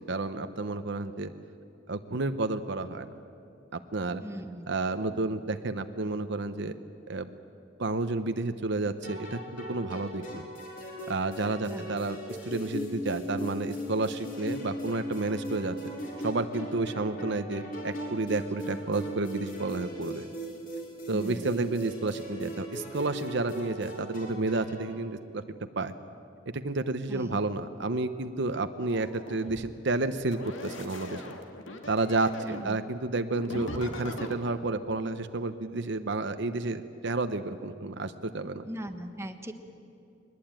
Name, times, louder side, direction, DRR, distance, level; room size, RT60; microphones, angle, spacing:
voice 1, 0.1-1.3 1.9-3.1 3.7-4.2 4.7-6.7 7.1-7.4 7.8-10.4 11.1-12.2 12.5-15.9 16.2-20.3 21.1-25.4 25.8-25.9 26.5-31.2 31.9-38.6, right 2 dB, 65° right, 9 dB, 0.9 m, -31 dB
voice 2, 4.2-4.7 11.6-11.9 21.1-21.5 27.1-27.4 32.4-32.8 38.7-39.5, right 1 dB, 15° right, 6 dB, 1.3 m, -39 dB
sound 1, 9.0-25.0, equal, 45° left, 4.8 m, -38 dB
sound 2, 28.8-29.7 30.3-32.7 33.3-34.4, left 1 dB, 80° left, 2.4 m, -40 dB
22.5 x 20.5 x 9.0 m, 2.5 s
head